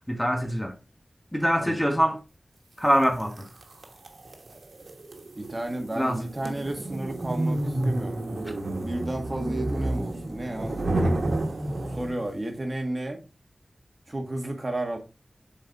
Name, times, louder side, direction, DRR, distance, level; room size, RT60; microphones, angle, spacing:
voice 1, 0.1-0.7 1.3-2.2 2.8-3.5 6.0-6.2, equal, 10° left, 1.2 m, -24 dB
sound 1, 3.0-12.4, right 1 dB, 80° right, 1.2 m, -30 dB
voice 2, 5.4-8.5 8.8-11.2 11.9-13.2 14.1-15.0, right 1 dB, 35° right, 1.6 m, -32 dB
7.1 x 4.2 x 3.5 m
wide cardioid pair, 85°, 0 cm